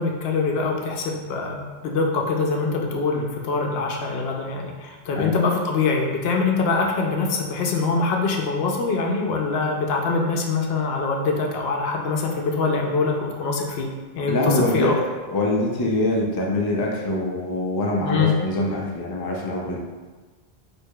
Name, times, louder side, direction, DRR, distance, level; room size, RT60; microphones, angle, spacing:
voice 1, 0.0-14.9 18.0-18.3, left 4 dB, 75° left, 1 dB, 0.8 m, -24 dB
voice 2, 14.3-19.8, left 1 dB, 35° left, -2 dB, 0.4 m, -24 dB
4.5 x 2.6 x 2.2 m, 1.3 s
omnidirectional pair, 1.0 m